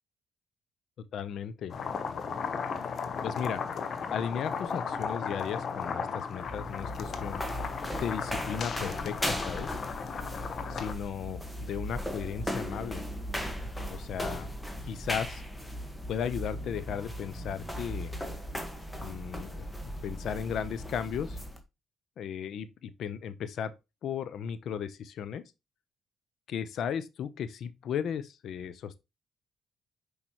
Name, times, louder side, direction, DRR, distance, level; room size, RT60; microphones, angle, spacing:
voice 1, 1.1-1.7 3.2-3.6 4.1-7.4 8.0-9.7 10.7-13.0 13.9-14.5 14.8-15.4 16.1-18.1 19.0-21.4 22.2-23.7 24.0-25.4 26.5-29.0, left 8 dB, 70° left, 0.8 m, -35 dB
sound 1, 1.7-10.9, left 6 dB, 55° left, 1.1 m, -35 dB
sound 2, 6.3-21.6, equal, 10° left, 1.5 m, -37 dB
6.2 x 5.2 x 3.1 m
cardioid pair, 90°, 0 cm